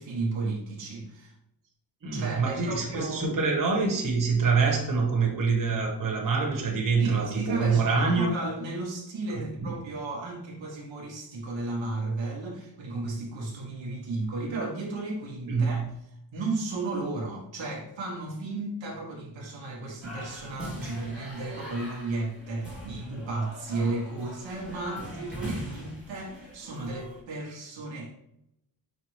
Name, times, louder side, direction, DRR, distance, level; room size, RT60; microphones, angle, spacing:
voice 1, 0.0-1.3 2.1-3.3 7.0-15.8 16.3-28.1, right 2 dB, 80° right, -2 dB, 1.1 m, -34 dB
voice 2, 2.0-8.3 9.3-9.8 15.5-15.8, right 4 dB, 45° right, -1 dB, 1.2 m, -25 dB
sound 1, 20.0-27.2, equal, 5° right, 1.3 m, -41 dB
5.3 x 2.5 x 3.0 m, 0.77 s
cardioid pair, 125°, 45 cm